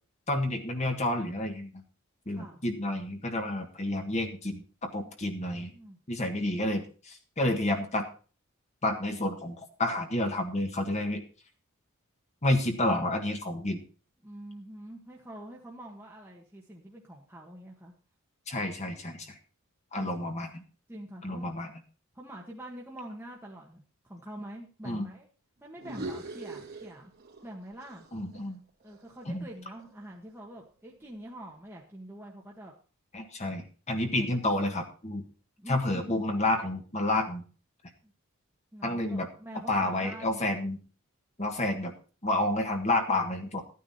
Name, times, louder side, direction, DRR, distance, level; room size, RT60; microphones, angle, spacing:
voice 1, 0.3-1.8 2.2-5.7 6.1-8.1 8.8-11.2 12.4-13.8 18.5-19.4 19.9-20.6 21.2-21.7 24.8-25.1 28.1-28.6 29.3-29.5 33.1-35.2 35.7-37.4 38.8-39.3 39.7-40.8 41.4-41.9 42.2-43.6, left 1 dB, 30° left, 4 dB, 1.6 m, -30 dB
voice 2, 2.3-2.6 5.7-6.0 14.2-17.9 20.0-20.1 20.9-21.5 22.1-25.3 25.6-27.1 27.4-28.1 28.8-32.7 33.9-34.4 35.6-36.2 38.0-38.1 38.7-40.5, right 1 dB, 10° right, -3 dB, 1.7 m, -45 dB
sound 1, 25.8-27.5 27.8-30.0, right 2 dB, 45° right, 3.0 m, -42 dB
13.5 x 9.8 x 4.3 m, 0.38 s
head